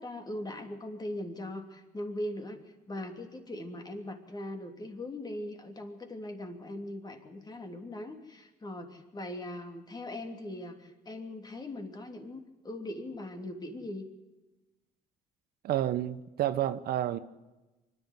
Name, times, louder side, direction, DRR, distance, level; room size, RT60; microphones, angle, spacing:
voice 1, 0.0-14.1, left 1 dB, 25° left, 4 dB, 3.1 m, -40 dB
voice 2, 15.6-17.2, right 12 dB, 65° right, 13 dB, 0.9 m, -30 dB
24.5 x 11.0 x 9.4 m, 1.1 s
cardioid pair, 110°, 17 cm